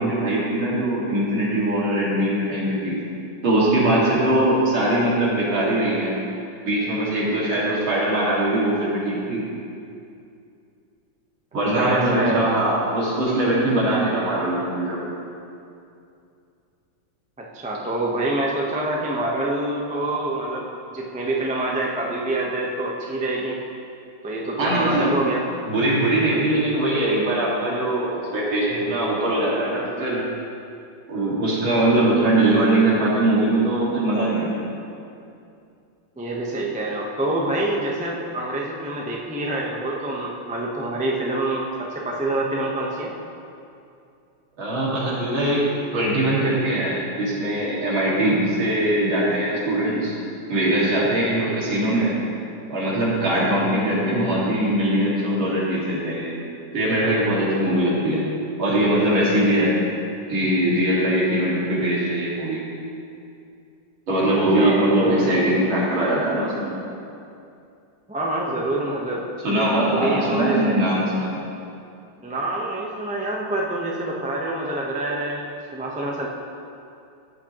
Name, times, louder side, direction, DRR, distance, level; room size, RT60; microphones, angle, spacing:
voice 1, 0.0-3.0 3.4-6.1 6.7-9.5 11.5-15.0 24.6-25.1 25.7-30.2 31.1-34.7 44.6-50.2 50.5-52.1 52.7-56.3 56.7-58.2 58.6-59.7 60.3-62.6 64.1-66.7 69.4-71.3, right 1 dB, 80° right, -6 dB, 3.0 m, -21 dB
voice 2, 11.7-12.7 17.4-20.7 20.9-23.6 24.2-25.4 36.2-43.1 64.6-65.2 68.1-69.3 69.9-70.8 72.2-76.3, right 1 dB, 10° right, -2 dB, 0.4 m, -26 dB
14.0 x 8.8 x 3.0 m, 2.5 s
omnidirectional pair, 2.2 m